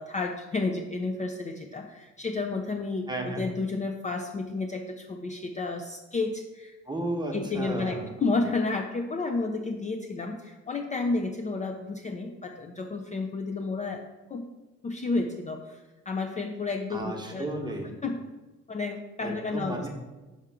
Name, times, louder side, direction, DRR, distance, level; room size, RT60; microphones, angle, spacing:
voice 1, 0.0-6.8 7.3-14.0 14.3-14.4 14.8-17.5 18.0-18.1 18.7-19.9, left 3 dB, 25° left, 4 dB, 0.4 m, -31 dB
voice 2, 3.1-3.5 6.8-8.1 16.9-18.0 19.2-19.9, right 2 dB, 15° right, 1 dB, 1.1 m, -33 dB
5.7 x 3.4 x 4.8 m, 1.1 s
cardioid pair, 90°, 30 cm